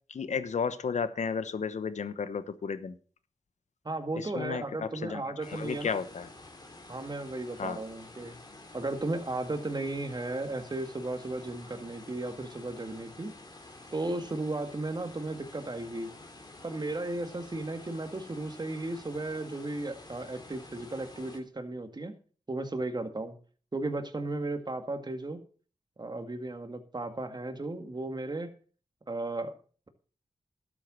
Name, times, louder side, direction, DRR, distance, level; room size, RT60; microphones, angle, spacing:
voice 1, 0.1-2.9 4.2-6.3 7.6-7.8, left 6 dB, 75° left, 1.1 m, -33 dB
voice 2, 3.8-6.0 6.9-8.4 8.7-13.3 13.9-16.1 16.6-22.1 22.5-23.4 23.7-25.4 26.0-28.5 29.1-29.5, right 2 dB, 35° right, 2.0 m, -35 dB
sound 1, 5.4-21.4, left 2 dB, 35° left, 2.8 m, -50 dB
12.0 x 7.6 x 6.2 m
cardioid pair, 60°, 12 cm